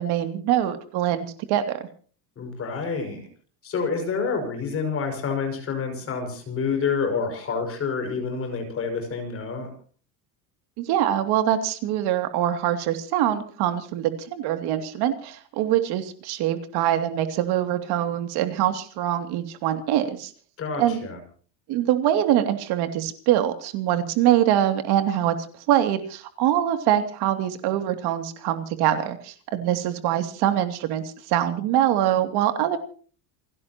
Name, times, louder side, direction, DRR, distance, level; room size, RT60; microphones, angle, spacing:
voice 1, 0.0-1.9 10.8-20.3 20.8-21.0 21.7-25.4 25.7-32.8, right 11 dB, 50° right, 7 dB, 2.8 m, -24 dB
voice 2, 2.4-3.3 3.6-9.7 20.6-21.2, left 5 dB, 25° left, 4 dB, 6.0 m, -28 dB
29.0 x 16.0 x 3.0 m, 0.43 s
cardioid pair, 165°, 49 cm